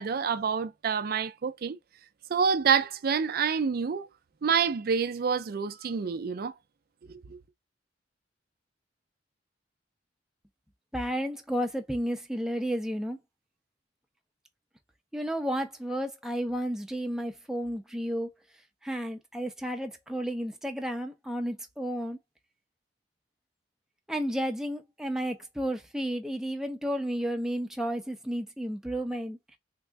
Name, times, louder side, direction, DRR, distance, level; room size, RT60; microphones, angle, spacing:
voice 1, 0.0-1.8 2.3-4.1 4.4-6.5 7.0-7.4, right 6 dB, 55° right, 0.4 m, -27 dB
voice 2, 10.9-13.2 15.1-18.3 18.8-22.2 24.1-29.4, equal, 5° right, 0.5 m, -32 dB
3.6 x 2.0 x 3.5 m
head